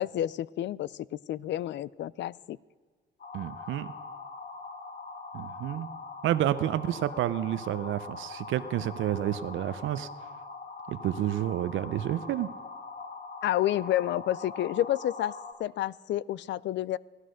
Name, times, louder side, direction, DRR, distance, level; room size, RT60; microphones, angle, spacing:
voice 1, 0.0-2.6 13.4-15.3 15.6-17.0, left 13 dB, 65° left, 23 dB, 0.4 m, -30 dB
sound 1, 3.2-15.5, left 4 dB, 45° left, 1.8 m, -42 dB
voice 2, 3.3-3.9 5.3-5.9 6.2-10.1 10.9-12.5, right 12 dB, 80° right, 13 dB, 0.6 m, -30 dB
17.0 x 11.5 x 6.3 m, 1.5 s
cardioid pair, 90°, 20 cm